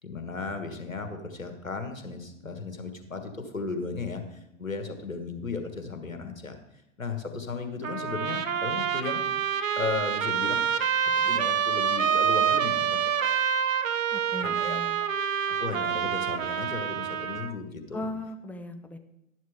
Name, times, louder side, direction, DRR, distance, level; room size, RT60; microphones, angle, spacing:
voice 1, 0.0-6.6 7.0-9.2 9.8-10.6 11.0-13.3 14.4-15.1 15.5-18.0, left 4 dB, 85° left, 7 dB, 1.5 m, -35 dB
Trumpet, 7.8-17.5, right 8 dB, 80° right, 0.8 m, -27 dB
voice 2, 14.1-15.0 17.9-19.0, left 1 dB, 5° left, 9 dB, 0.5 m, -38 dB
11.5 x 11.0 x 3.6 m, 0.87 s
figure-of-eight pair, 100°, 39 cm